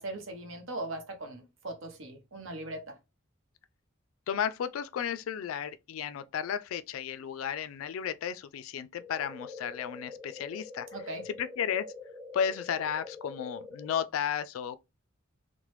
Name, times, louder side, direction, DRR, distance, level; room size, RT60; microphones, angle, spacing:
voice 1, 0.0-2.9 10.9-11.2, right 2 dB, 70° right, 0.9 m, -39 dB
voice 2, 4.3-10.9 11.3-11.9 12.3-14.8, left 8 dB, 80° left, 0.3 m, -33 dB
sound 1, 9.0-14.0, left 4 dB, ahead, 0.4 m, -45 dB
3.0 x 2.1 x 3.0 m
head